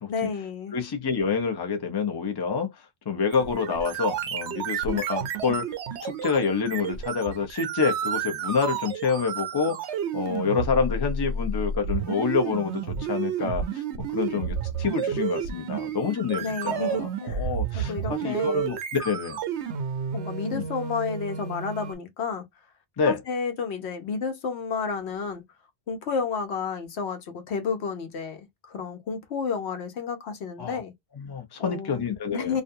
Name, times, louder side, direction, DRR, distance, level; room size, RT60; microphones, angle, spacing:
voice 1, 0.1-0.8 16.4-17.5 17.7-18.6 20.1-22.4 23.1-25.4 25.9-30.9 31.6-32.0 32.3-32.6, left 5 dB, 75° left, 1.0 m, -31 dB
voice 2, 0.7-2.7 3.1-5.7 6.0-9.8 10.1-13.8 14.1-18.8 19.0-19.4 20.5-20.6 23.0-23.2 30.6-30.8 31.2-32.6, left 5 dB, 30° left, 0.5 m, -27 dB
sound 1, 3.3-22.0, right 6 dB, 80° right, 0.9 m, -31 dB
2.5 x 2.2 x 2.6 m
omnidirectional pair, 1.1 m